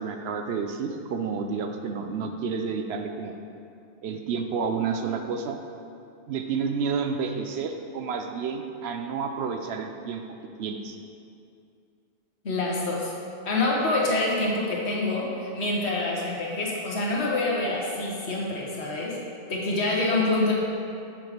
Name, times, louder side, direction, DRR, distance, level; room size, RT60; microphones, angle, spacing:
voice 1, 0.0-3.4 4.0-5.6 6.3-10.2 10.6-11.0, right 5 dB, 70° right, 5 dB, 0.8 m, -30 dB
voice 2, 12.4-13.1 13.4-19.2 19.5-20.5, left 2 dB, 70° left, -3 dB, 1.5 m, -26 dB
7.0 x 4.8 x 5.0 m, 2.5 s
omnidirectional pair, 1.2 m